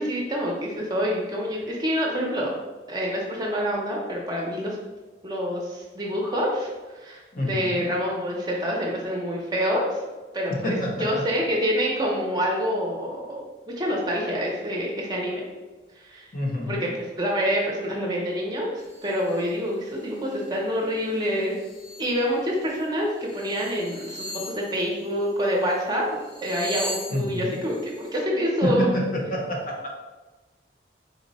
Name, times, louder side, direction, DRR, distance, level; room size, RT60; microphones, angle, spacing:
voice 1, 0.0-2.6 2.9-4.8 5.2-10.0 10.3-15.5 15.9-16.3 16.6-16.9 17.2-21.6 22.0-28.9, equal, 20° right, -2 dB, 0.6 m, -27 dB
voice 2, 7.3-7.9 10.5-11.2 16.3-16.9 27.1-27.6 28.6-29.9, left 1 dB, 45° left, 0 dB, 0.7 m, -28 dB
sound 1, 18.8-19.5 19.9-20.5 20.8-22.1 22.6-22.8 23.1-25.8 26.1-28.2, equal, 85° left, 1.2 m, -39 dB
4.0 x 2.1 x 4.0 m, 1.2 s
head